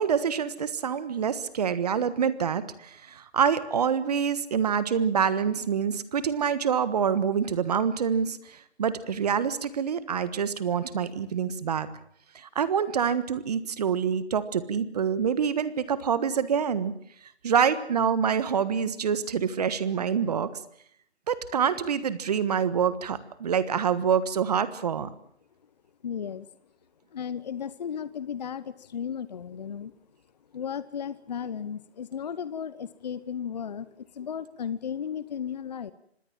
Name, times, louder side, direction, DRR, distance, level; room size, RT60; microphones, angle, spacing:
voice 1, 0.0-11.9 12.3-16.9 17.4-20.5 21.3-25.1, right 7 dB, 35° right, 15 dB, 1.5 m, -26 dB
voice 2, 26.0-26.5 27.1-29.9 30.5-35.9, left 8 dB, 40° left, 15 dB, 1.0 m, -35 dB
26.0 x 20.0 x 7.4 m, 0.65 s
figure-of-eight pair, 155°, 33 cm